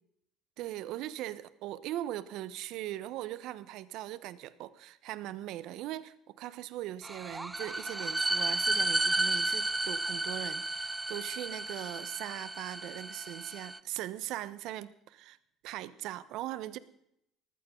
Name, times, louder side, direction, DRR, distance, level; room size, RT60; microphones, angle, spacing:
voice 1, 0.6-15.4 15.6-16.8, right 14 dB, 70° right, 16 dB, 1.1 m, -40 dB
sound 1, 7.0-13.8, right 2 dB, 10° right, 0.9 m, -33 dB
19.5 x 14.5 x 3.9 m, 0.76 s
hypercardioid pair, 70°, 0 cm